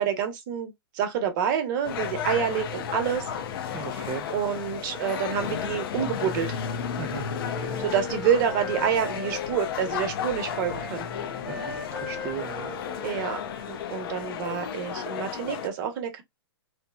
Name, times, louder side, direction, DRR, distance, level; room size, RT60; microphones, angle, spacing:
voice 1, 0.0-3.3 3.9-6.6 7.8-11.1 13.0-13.4 13.7-16.2, right 8 dB, 45° right, 0.8 m, -28 dB
sound 1, 1.8-15.7, left 8 dB, 55° left, 0.6 m, -33 dB
voice 2, 3.7-4.2 7.0-7.3 11.5-12.7, right 8 dB, 20° right, 0.3 m, -36 dB
Wind instrument woodwind instrument, 6.6-10.2 10.5-14.3, left 3 dB, 10° left, 0.7 m, -40 dB
2.9 x 2.1 x 2.2 m
hypercardioid pair, 135°, 14 cm